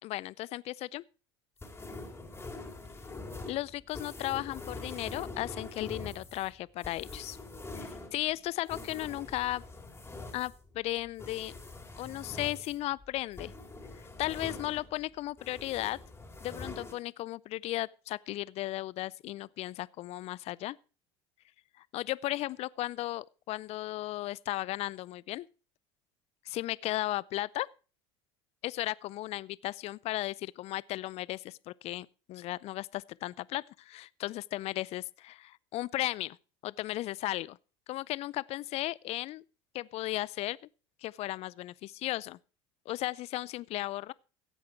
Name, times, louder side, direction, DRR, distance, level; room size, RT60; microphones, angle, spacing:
voice 1, 0.0-1.0 3.5-7.4 7.7-9.6 10.3-11.5 12.0-13.5 14.2-16.0 16.4-20.8 21.9-25.5 26.5-27.7 28.6-36.4 36.6-37.6 37.9-39.4 39.7-40.6 41.0-42.4 42.9-44.1, left 16 dB, 50° left, 0.5 m, -35 dB
sound 1, 1.6-15.1 15.4-16.9, left 2 dB, 15° left, 3.7 m, -44 dB
15.5 x 8.5 x 4.7 m
hypercardioid pair, 80°, 14 cm